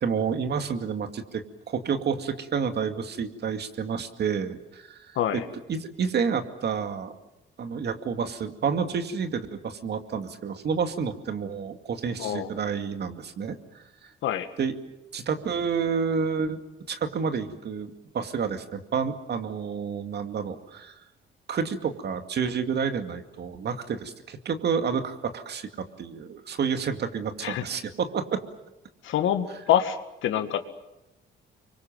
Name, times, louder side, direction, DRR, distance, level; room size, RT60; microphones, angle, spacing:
voice 1, 0.0-5.4 5.7-7.1 7.6-14.1 14.6-14.7 15.1-16.6 16.9-21.0 21.5-28.4, right 6 dB, 55° right, 7 dB, 2.3 m, -29 dB
voice 2, 5.2-5.5 12.2-12.5 14.2-14.5 27.4-27.6 29.0-30.0 30.2-30.7, left 10 dB, 80° left, 8 dB, 2.0 m, -25 dB
26.0 x 23.5 x 7.6 m, 0.95 s
cardioid pair, 90°, 20 cm